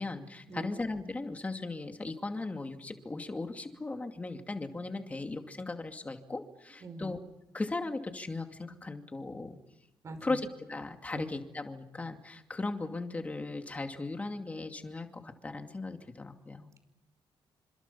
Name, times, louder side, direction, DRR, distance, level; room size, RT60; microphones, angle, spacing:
voice 1, 0.0-7.2 7.5-9.6 10.2-16.7, left 3 dB, 15° left, 5 dB, 2.5 m, -37 dB
voice 2, 6.8-7.1 10.0-10.4 11.1-11.2, right 3 dB, 35° right, 8 dB, 5.4 m, -43 dB
29.5 x 27.0 x 5.7 m, 0.87 s
wide cardioid pair, 175°, 9 cm